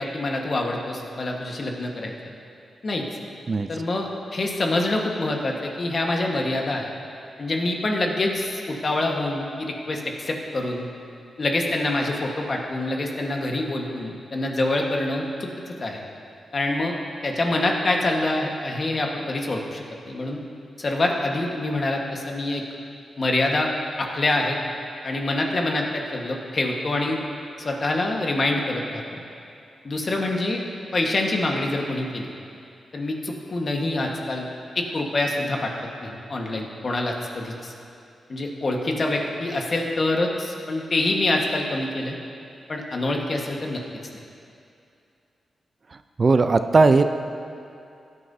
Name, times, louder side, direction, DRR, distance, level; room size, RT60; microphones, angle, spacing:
voice 1, 0.0-2.1 2.8-3.1 3.7-6.9 7.4-10.9 11.4-16.0 16.5-16.9 17.2-20.4 20.8-22.6 23.2-23.7 24.0-24.6 25.0-27.2 27.6-29.2 29.8-30.6 30.9-32.3 32.9-34.5 34.7-35.7 36.0-37.7 38.3-42.1 42.7-43.8, left 2 dB, 45° left, 1 dB, 1.4 m, -26 dB
voice 2, 46.2-47.0, right 3 dB, 45° right, 9 dB, 0.5 m, -17 dB
16.0 x 9.7 x 2.7 m, 2.6 s
cardioid pair, 70°, 0 cm